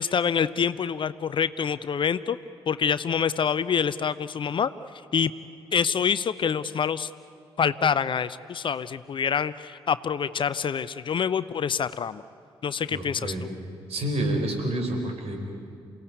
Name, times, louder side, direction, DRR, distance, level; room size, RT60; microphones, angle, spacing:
voice 1, 0.0-2.4 2.7-4.7 5.1-5.3 5.7-7.1 7.6-12.2 12.6-13.5, left 7 dB, 40° left, 16 dB, 0.6 m, -26 dB
voice 2, 12.9-13.5 13.9-15.4, right 1 dB, 50° right, 4 dB, 4.2 m, -28 dB
28.0 x 17.0 x 9.6 m, 2.3 s
figure-of-eight pair, 40°, 13 cm